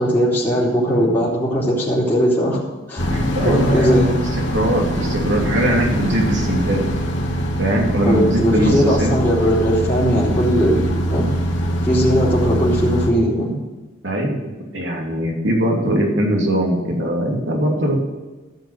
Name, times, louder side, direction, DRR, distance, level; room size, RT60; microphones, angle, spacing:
voice 1, 0.0-2.6 2.9-3.1 3.4-4.1 8.0-11.3 11.8-13.5, equal, 10° left, -11 dB, 3.5 m, -19 dB
sound 1, 3.0-13.1, equal, 70° left, 2.5 m, -23 dB
voice 2, 3.1-4.1 4.5-6.9 7.6-9.2 14.0-18.0, right 1 dB, 65° right, -1 dB, 3.0 m, -20 dB
15.0 x 6.0 x 6.6 m, 1.2 s
head